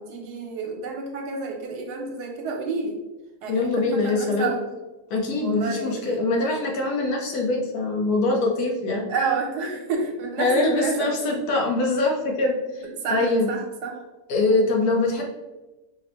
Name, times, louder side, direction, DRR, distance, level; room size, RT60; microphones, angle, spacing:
voice 1, 0.0-3.0 3.4-4.6 5.4-6.2 9.1-11.4 12.8-14.0 14.5-14.6, right 4 dB, 75° right, 2 dB, 1.3 m, -29 dB
voice 2, 3.5-4.5 5.1-9.1 10.4-12.8 13.1-13.5 14.3-15.2, left 2 dB, 70° left, 0 dB, 1.3 m, -23 dB
5.1 x 2.1 x 4.2 m, 1.1 s
omnidirectional pair, 1.8 m